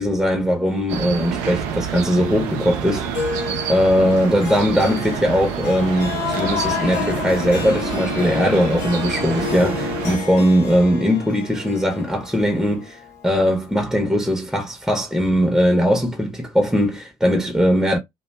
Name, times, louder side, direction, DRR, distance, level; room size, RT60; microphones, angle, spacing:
voice 1, 0.0-3.3 3.7-18.0, equal, 5° right, 0.7 m, -20 dB
sound 1, 0.9-10.2, right 8 dB, 70° right, 0.5 m, -28 dB
Harp, 3.1-13.7, left 7 dB, 80° left, 0.7 m, -32 dB
sound 2, 5.8-10.6, left 6 dB, 45° left, 0.8 m, -31 dB
2.5 x 2.2 x 2.2 m
hypercardioid pair, 45°, 20 cm